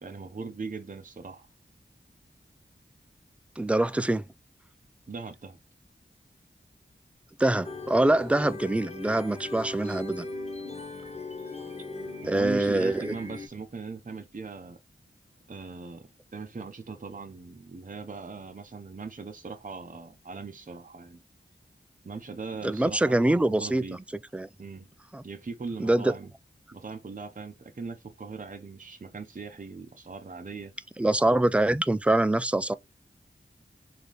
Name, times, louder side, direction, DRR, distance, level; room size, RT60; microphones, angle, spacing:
voice 1, 0.0-1.5 5.1-5.6 12.3-14.8 15.5-21.2 22.0-24.0 24.6-24.9 25.2-26.3 26.7-30.7, right 4 dB, 40° right, 0.6 m, -40 dB
voice 2, 3.6-4.3 7.4-10.3 12.3-13.2 22.6-23.8 24.3-24.5 25.1-25.2 25.8-26.1 31.0-32.7, right 1 dB, 5° right, 0.3 m, -24 dB
sound 1, 7.6-13.5, left 2 dB, 30° left, 1.2 m, -39 dB
3.9 x 2.8 x 3.3 m
wide cardioid pair, 45°, 21 cm